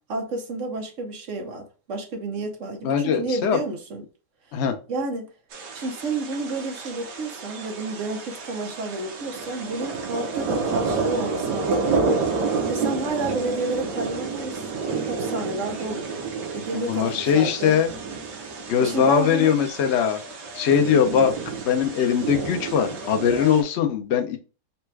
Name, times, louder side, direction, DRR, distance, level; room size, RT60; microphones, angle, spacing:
voice 1, 0.1-4.0 4.9-5.2 5.7-12.2 12.7-16.1 16.5-17.8 18.8-19.5, right 2 dB, 55° right, 1.0 m, -30 dB
voice 2, 2.8-3.6 4.5-4.7 16.7-17.9 18.7-20.2 20.5-21.3 21.6-24.4, left 8 dB, 70° left, 0.6 m, -21 dB
sound 1, 5.5-23.6, right 4 dB, 70° right, 1.4 m, -30 dB
4.2 x 2.3 x 4.5 m
omnidirectional pair, 1.9 m